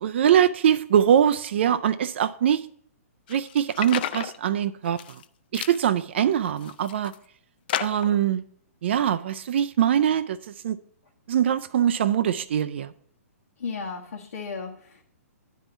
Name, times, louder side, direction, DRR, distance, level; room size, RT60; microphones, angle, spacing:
voice 1, 0.0-2.7 3.3-5.0 5.5-7.1 7.8-8.4 8.8-10.4 10.6-10.8 11.3-12.9, right 9 dB, 50° right, 0.3 m, -22 dB
sound 1, 3.3-4.4 4.8-5.2 5.5-5.8 6.4-7.1 7.7-8.2, left 10 dB, 40° left, 0.4 m, -32 dB
voice 2, 13.6-15.0, left 5 dB, 85° left, 1.3 m, -34 dB
10.0 x 3.7 x 6.8 m
hypercardioid pair, 165°, 8 cm